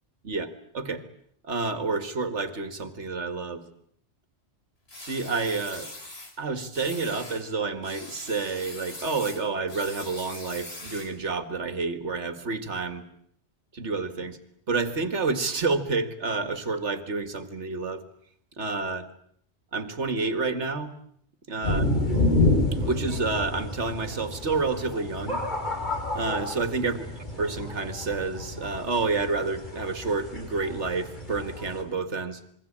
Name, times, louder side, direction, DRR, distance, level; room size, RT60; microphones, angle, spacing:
voice 1, 1.4-3.6 5.0-5.9 6.4-13.0 13.7-14.4 14.7-18.0 18.6-19.1 19.7-20.9 21.5-21.9 22.7-25.4 26.1-26.9 27.4-32.4, right 3 dB, 80° right, 10 dB, 2.3 m, -29 dB
sound 1, 4.9-6.3 6.7-7.4 7.8-11.2, left 2 dB, 65° left, 4.4 m, -42 dB
sound 2, 21.6-31.8, left 2 dB, 40° left, 5.8 m, -29 dB
27.0 x 23.0 x 8.8 m, 0.67 s
omnidirectional pair, 1.2 m